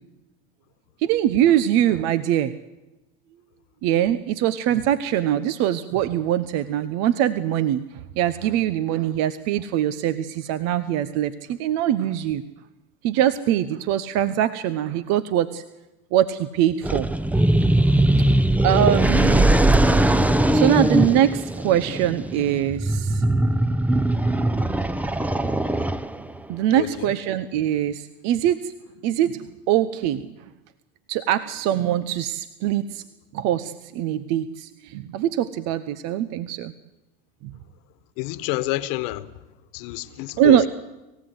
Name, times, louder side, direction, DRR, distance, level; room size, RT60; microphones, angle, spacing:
voice 1, 1.0-2.5 3.8-7.8 8.2-12.4 13.0-15.6 16.1-17.1 18.6-19.5 20.4-23.2 26.5-28.7 29.0-30.2 31.1-33.0 33.3-36.7 37.4-37.5 40.4-40.7, right 11 dB, 60° right, 0.9 m, -22 dB
sound 1, 16.8-26.4, right 1 dB, 5° right, 0.7 m, -20 dB
voice 2, 26.7-27.1 38.2-39.3 39.7-40.6, left 18 dB, 70° left, 1.3 m, -28 dB
26.5 x 16.0 x 7.9 m
hypercardioid pair, 90°, 29 cm